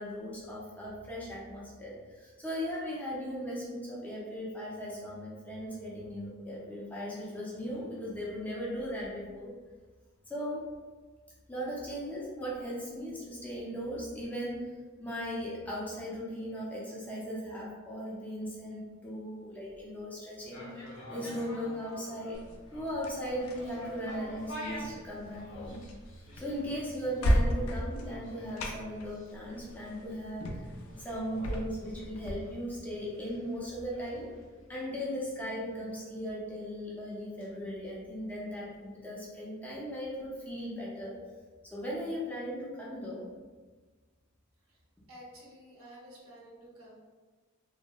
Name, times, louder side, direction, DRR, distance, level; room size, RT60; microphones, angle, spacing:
voice 1, 0.0-9.5 10.3-10.6 11.5-14.7 15.0-20.7 21.1-22.4 22.7-25.8 26.3-30.6 31.0-34.3 34.7-41.2 41.7-43.3, equal, 10° left, -6 dB, 0.4 m, -38 dB
sound 1, 20.4-38.6 38.9-39.0, equal, 55° left, 0.7 m, -49 dB
sound 2, 22.3-32.3, equal, 85° left, 0.3 m, -35 dB
voice 2, 45.1-47.0, equal, 80° right, -4 dB, 0.8 m, -51 dB
2.7 x 2.0 x 2.2 m, 1.3 s
head